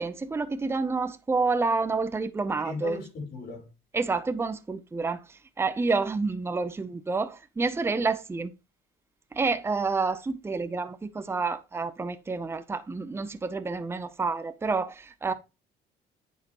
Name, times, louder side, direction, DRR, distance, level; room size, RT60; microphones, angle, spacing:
voice 1, 0.0-3.0 3.9-5.2 5.6-8.5 9.3-15.3, right 4 dB, 15° right, 0.6 m, -29 dB
voice 2, 2.6-3.7, left 4 dB, 70° left, 4.4 m, -37 dB
9.6 x 5.6 x 3.0 m
cardioid pair, 110°, 17 cm